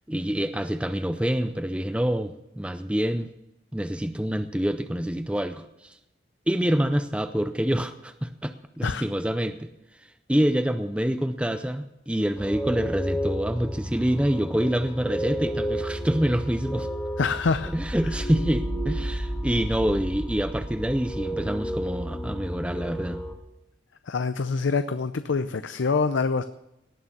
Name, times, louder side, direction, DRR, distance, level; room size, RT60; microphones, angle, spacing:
voice 1, 0.1-3.3 3.7-6.0 6.5-9.7 10.3-16.9 17.7-23.2, equal, 5° right, 9 dB, 0.5 m, -26 dB
sound 1, 12.4-23.3, equal, 10° left, 2.2 m, -31 dB
voice 2, 17.2-17.7 24.1-26.4, left 4 dB, 90° left, 11 dB, 0.6 m, -25 dB
18.5 x 6.6 x 7.2 m, 0.92 s
head